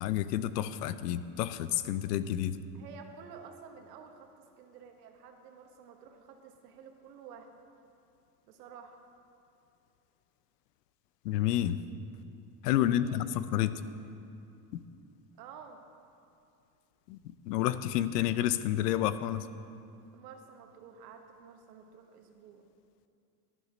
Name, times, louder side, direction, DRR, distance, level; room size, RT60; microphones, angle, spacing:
voice 1, 0.0-2.6 11.2-11.8 12.6-13.8 17.1-17.2 17.5-19.5, left 12 dB, 90° left, 14 dB, 0.7 m, -29 dB
voice 2, 2.7-7.5 8.5-9.0 12.8-13.3 13.5-13.7 15.4-15.8 20.1-22.7, right 6 dB, 85° right, 4 dB, 1.6 m, -51 dB
11.5 x 11.0 x 5.1 m, 2.7 s
supercardioid pair, 140°, 47 cm